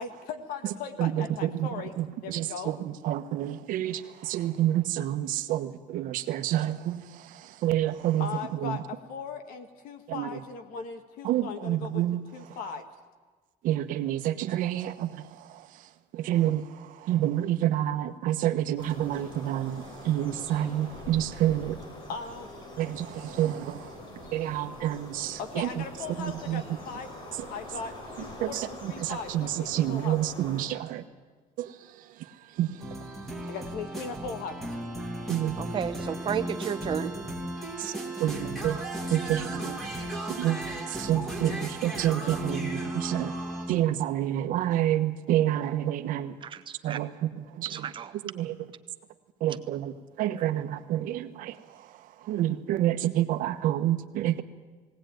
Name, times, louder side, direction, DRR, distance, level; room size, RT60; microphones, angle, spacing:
voice 1, 0.0-1.9 2.2-2.7 8.2-12.0 12.3-12.8 22.1-22.5 25.4-27.1 27.5-30.2 33.5-34.6, left 5 dB, 75° left, 8 dB, 1.9 m, -38 dB
voice 2, 1.0-1.7 2.0-8.8 10.1-10.4 11.2-12.2 13.6-21.8 22.8-25.8 26.2-26.6 27.4-27.5 28.4-31.0 31.6-33.4 35.3-35.7 37.8-38.8 39.1-40.0 40.3-43.3 43.7-46.4 46.8-47.9 48.2-48.7 49.4-54.4, right 12 dB, 70° right, 9 dB, 1.2 m, -29 dB
sound 1, 18.8-30.6, left 1 dB, 35° left, 7.0 m, -44 dB
sound 2, 32.8-43.9, right 1 dB, ahead, 2.3 m, -35 dB
voice 3, 35.6-37.1 46.4-47.0 47.7-48.1, right 8 dB, 35° right, 10 dB, 1.0 m, -32 dB
19.5 x 18.0 x 9.2 m, 1.4 s
cardioid pair, 155°, 15 cm